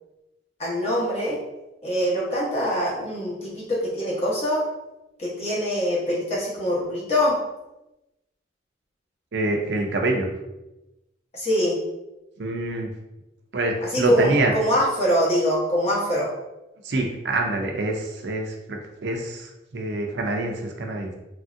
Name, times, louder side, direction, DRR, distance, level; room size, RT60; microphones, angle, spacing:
voice 1, 0.6-1.4 1.8-4.6 5.2-7.4 11.3-11.8 13.8-16.3, equal, 35° left, -5 dB, 0.9 m, -24 dB
voice 2, 9.3-10.3 12.4-12.9 13.5-14.5 16.8-21.1, right 2 dB, 65° right, 2 dB, 0.5 m, -26 dB
3.1 x 2.6 x 2.5 m, 0.97 s
head